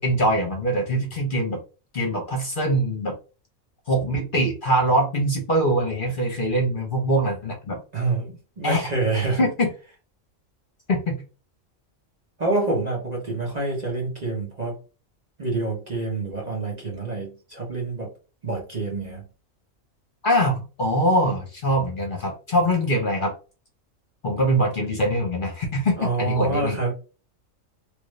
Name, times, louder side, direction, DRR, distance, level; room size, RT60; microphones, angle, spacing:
voice 1, 0.0-1.6 1.9-3.2 3.9-7.8 8.6-8.8 9.4-9.7 10.9-11.2 20.2-23.3 24.2-26.8, equal, 45° left, 2 dB, 0.9 m, -23 dB
voice 2, 7.9-9.4 12.4-14.8 15.4-18.1 18.4-19.2 26.0-26.9, right 3 dB, 35° right, -2 dB, 1.0 m, -27 dB
3.2 x 2.5 x 3.1 m, 0.34 s
omnidirectional pair, 1.4 m